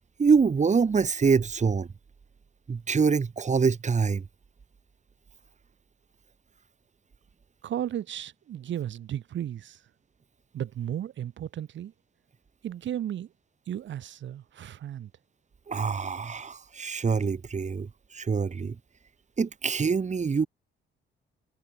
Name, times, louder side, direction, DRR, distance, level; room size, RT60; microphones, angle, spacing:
voice 1, 0.2-1.9 2.7-4.2 15.7-18.8 19.4-20.5, right 5 dB, 35° right, 5.1 m, -25 dB
voice 2, 7.6-9.8 10.5-11.9 12.6-13.3 13.7-15.1, right 10 dB, 70° right, 6.6 m, -34 dB
cardioid pair, 90°, 20 cm